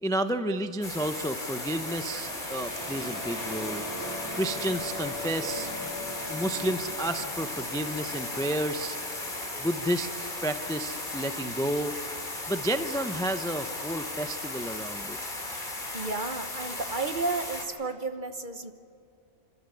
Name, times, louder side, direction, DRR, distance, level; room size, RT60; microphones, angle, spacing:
voice 1, 0.0-3.9 4.3-5.7 6.3-9.0 9.6-11.9 12.5-15.2, right 1 dB, 5° left, 8 dB, 0.5 m, -31 dB
sound 1, 0.8-17.7, left 2 dB, 40° left, 2.7 m, -36 dB
sound 2, 1.1-12.8, left 1 dB, 55° right, 4.8 m, -42 dB
sound 3, 1.5-7.5, equal, 85° right, 4.8 m, -52 dB
voice 2, 15.9-18.7, right 3 dB, 40° right, 8 dB, 1.2 m, -32 dB
28.5 x 13.5 x 9.9 m, 2.6 s
omnidirectional pair, 1.4 m